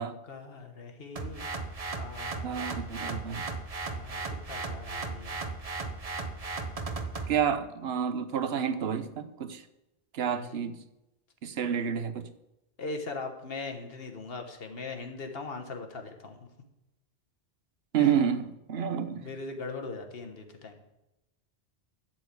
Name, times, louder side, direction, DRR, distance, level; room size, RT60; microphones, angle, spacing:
voice 1, 0.0-1.5 2.0-3.4 3.9-4.2 4.5-5.4 10.3-10.6 12.8-16.5 18.0-18.1 19.2-20.8, left 3 dB, 65° left, 1.5 m, -40 dB
sound 1, 1.2-7.4, right 3 dB, 40° right, 0.9 m, -36 dB
voice 2, 2.4-3.5 7.3-9.6 10.1-10.8 11.4-12.3 17.9-19.3, right 8 dB, 75° right, 1.0 m, -29 dB
12.0 x 4.5 x 8.3 m
omnidirectional pair, 1.1 m